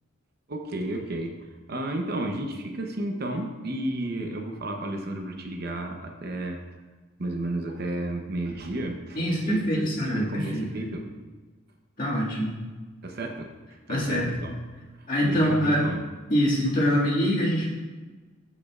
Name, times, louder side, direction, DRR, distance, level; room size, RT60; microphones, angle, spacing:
voice 1, 0.5-1.3 1.7-6.6 7.2-11.0 13.0-13.5 13.9-14.5 15.0-16.0, right 1 dB, 45° right, 3 dB, 0.8 m, -32 dB
voice 2, 9.2-10.9 12.0-12.6 13.9-14.4 15.1-15.8 16.3-17.7, equal, 40° left, -6 dB, 1.9 m, -24 dB
15.0 x 5.2 x 2.4 m, 1.3 s
head